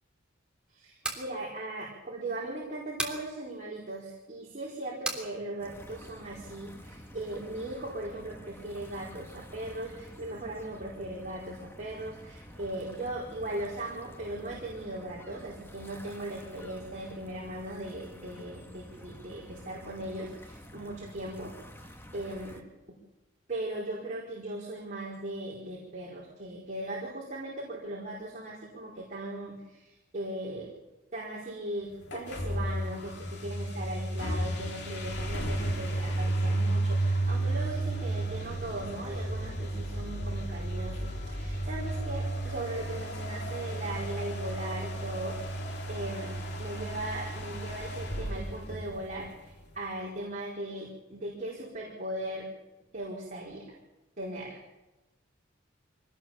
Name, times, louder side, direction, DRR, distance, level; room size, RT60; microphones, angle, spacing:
voice 1, 0.7-21.5 21.8-22.6 22.9-23.0 23.5-30.7 31.1-52.5 52.9-53.6 54.2-54.6, right 1 dB, 40° right, -5 dB, 4.6 m, -38 dB
sound 1, 0.9-1.3 3.0-3.2 5.0-5.3, right 2 dB, 5° right, 3.4 m, -33 dB
sound 2, 5.6-22.6, equal, 10° left, 1.8 m, -49 dB
sound 3, 32.0-49.5, right 1 dB, 55° left, 2.8 m, -33 dB
24.5 x 18.5 x 7.3 m, 1.0 s
head